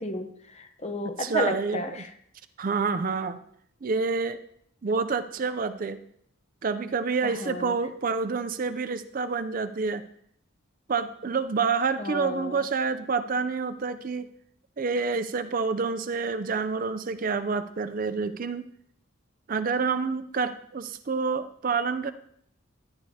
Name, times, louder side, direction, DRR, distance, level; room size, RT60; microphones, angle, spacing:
voice 1, 0.0-2.1 7.2-7.7 12.0-12.6, left 2 dB, 30° left, 8 dB, 0.8 m, -32 dB
voice 2, 1.0-2.0 2.6-3.4 3.8-4.4 4.8-6.0 6.6-10.0 10.9-14.3 14.8-18.7 19.5-22.1, right 4 dB, 40° right, 11 dB, 0.4 m, -28 dB
11.5 x 10.5 x 2.8 m, 0.66 s
head